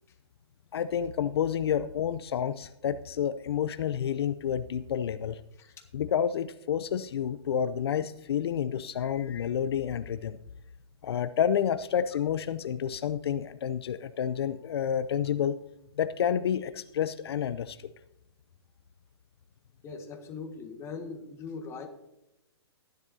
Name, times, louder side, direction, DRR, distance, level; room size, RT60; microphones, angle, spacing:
voice 1, 0.7-5.4 5.9-10.4 11.0-15.6 16.0-17.9, left 8 dB, 70° left, 13 dB, 0.5 m, -29 dB
voice 2, 19.8-21.9, left 4 dB, 20° left, 4 dB, 1.5 m, -40 dB
14.5 x 10.5 x 2.7 m, 0.87 s
hypercardioid pair, 140°, 14 cm